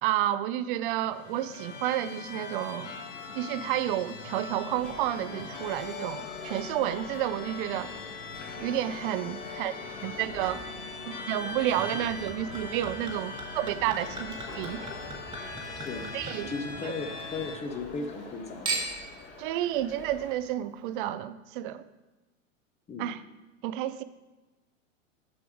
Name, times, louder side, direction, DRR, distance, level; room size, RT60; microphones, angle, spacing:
voice 1, 0.0-2.9 3.3-8.0 8.6-9.7 10.0-10.7 11.1-14.9 16.1-16.5 16.8-16.9 19.4-21.8 23.0-23.2 23.6-24.0, right 12 dB, 45° right, 14 dB, 0.5 m, -30 dB
sound 1, 0.8-17.6, left 4 dB, 70° left, 1.3 m, -41 dB
sound 2, 4.5-20.3, left 3 dB, 35° left, 1.9 m, -47 dB
Chink clink / Liquid, 11.8-17.3 17.6-18.3 18.7-19.2 19.9-20.0, right 3 dB, 10° right, 1.2 m, -39 dB
voice 2, 16.4-18.9 22.9-23.1, left 4 dB, 15° left, 6 dB, 0.8 m, -36 dB
7.1 x 6.8 x 4.9 m, 1.1 s
hypercardioid pair, 105°, 39 cm